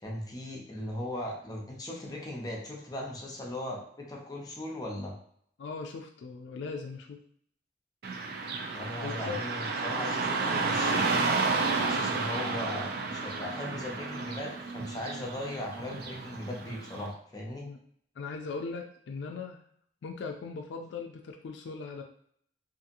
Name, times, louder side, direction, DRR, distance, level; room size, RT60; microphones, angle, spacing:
voice 1, 0.0-5.1 8.7-11.3 11.8-17.7, left 1 dB, 20° left, -1 dB, 0.5 m, -38 dB
voice 2, 5.6-7.2 9.0-9.4 17.6-17.8 18.2-19.6 20.0-22.0, left 4 dB, 75° left, 2 dB, 0.3 m, -39 dB
Car passing by / Traffic noise roadway noise, 8.0-17.1, right 4 dB, 55° right, 0.4 m, -31 dB
2.7 x 2.5 x 2.6 m, 0.64 s
head